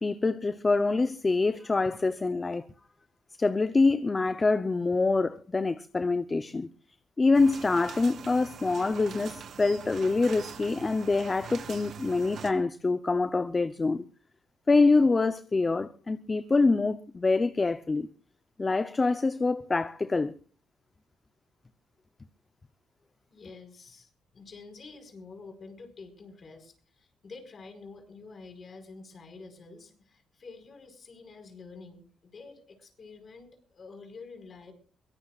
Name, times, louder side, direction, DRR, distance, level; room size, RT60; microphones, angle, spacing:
voice 1, 0.0-2.6 3.4-6.7 7.2-14.0 14.7-18.1 18.6-20.3, left 3 dB, 25° left, 0.7 m, -25 dB
sound 1, 7.3-12.5, right 7 dB, 60° right, 2.5 m, -43 dB
voice 2, 23.3-34.7, left 4 dB, 45° left, 4.8 m, -48 dB
23.5 x 18.0 x 2.4 m
cardioid pair, 90°, 0 cm